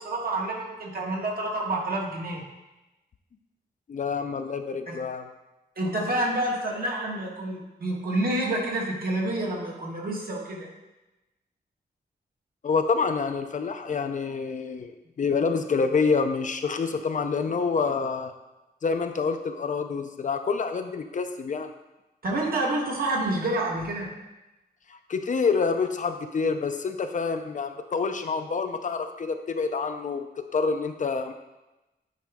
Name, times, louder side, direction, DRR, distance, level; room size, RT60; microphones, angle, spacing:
voice 1, 0.0-2.4 4.9-5.0 5.8-10.7 22.2-24.1, right 1 dB, 55° right, -1 dB, 1.4 m, -28 dB
voice 2, 3.9-5.3 12.6-18.3 18.8-21.7 24.9-30.2 30.5-31.3, left 5 dB, 45° left, 7 dB, 0.5 m, -27 dB
8.9 x 4.9 x 3.5 m, 1.0 s
wide cardioid pair, 180°, 18 cm